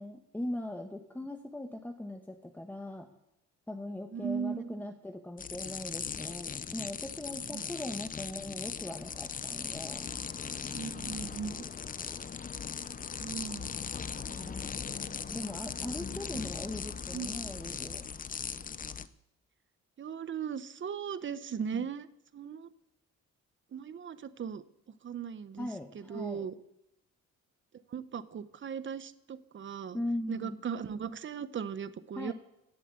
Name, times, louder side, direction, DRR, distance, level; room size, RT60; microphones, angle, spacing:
voice 1, 0.0-3.1 3.7-10.1 14.3-18.1 21.7-21.9 25.6-26.5 29.9-30.6 32.2-32.3, left 1 dB, 5° left, 4 dB, 1.1 m, -40 dB
voice 2, 4.1-4.9 7.5-7.6 10.7-11.6 13.2-13.8 17.1-17.5 20.0-22.1 22.3-22.7 23.7-24.6 25.0-25.7 25.9-26.5 27.9-30.0 30.3-32.3, right 7 dB, 40° right, 14 dB, 0.8 m, -38 dB
sound 1, 5.4-19.1, left 6 dB, 30° left, 0.6 m, -39 dB
16.5 x 7.3 x 8.1 m, 0.85 s
cardioid pair, 90°, 30 cm